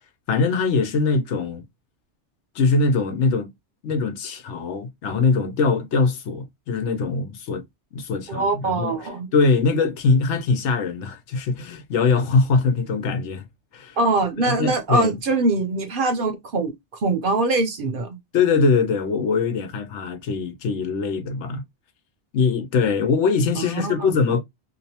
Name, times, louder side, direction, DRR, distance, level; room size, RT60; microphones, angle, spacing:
voice 1, 0.3-1.6 2.5-3.5 3.8-7.6 7.9-8.9 9.3-13.5 13.7-14.0 14.4-15.2 18.3-21.6 22.3-24.4, left 4 dB, 85° left, 1.0 m, -22 dB
voice 2, 8.3-9.3 14.0-18.2 23.6-24.1, right 2 dB, 55° right, 0.7 m, -23 dB
2.7 x 2.1 x 2.7 m
omnidirectional pair, 1.2 m